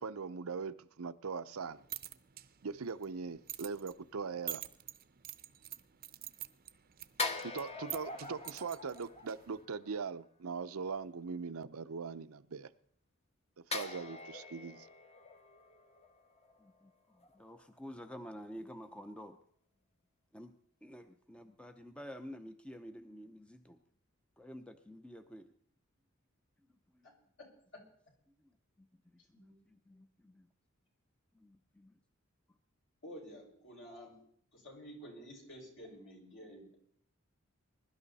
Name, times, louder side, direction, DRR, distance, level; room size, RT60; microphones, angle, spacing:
voice 1, 0.0-1.8 2.6-4.6 7.4-12.7 13.7-14.9, right 5 dB, 85° right, 0.7 m, -41 dB
sound 1, 1.6-9.7, right 14 dB, 45° right, 0.7 m, -48 dB
sound 2, 7.2-9.9 13.7-16.9 17.2-17.4, left 3 dB, 30° left, 1.3 m, -43 dB
voice 2, 16.6-19.4 20.3-20.5 20.8-23.8 24.4-25.5 26.9-27.1 28.4-28.5 28.8-30.5 31.3-31.9, equal, 5° left, 0.7 m, -50 dB
voice 3, 27.4-27.8 29.3-29.5 33.0-34.2 34.5-36.8, equal, 60° left, 5.7 m, -51 dB
21.5 x 12.0 x 4.1 m
head